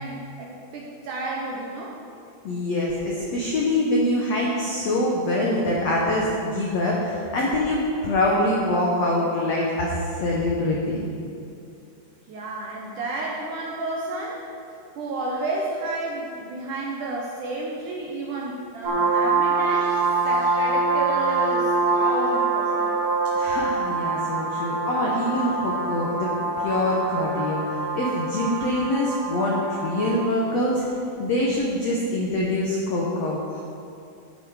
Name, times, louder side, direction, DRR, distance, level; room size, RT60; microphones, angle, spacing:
voice 1, 0.0-1.9 12.3-14.4 15.0-19.9 20.2-23.0, right 2 dB, 75° right, -3 dB, 2.0 m, -31 dB
voice 2, 2.4-11.0 23.3-26.3 26.6-30.8 31.2-33.6, left 1 dB, 80° left, -3 dB, 1.5 m, -24 dB
sound 1, 18.8-30.2, right 3 dB, 25° right, 1.4 m, -25 dB
11.0 x 8.0 x 4.8 m, 2.5 s
omnidirectional pair, 4.6 m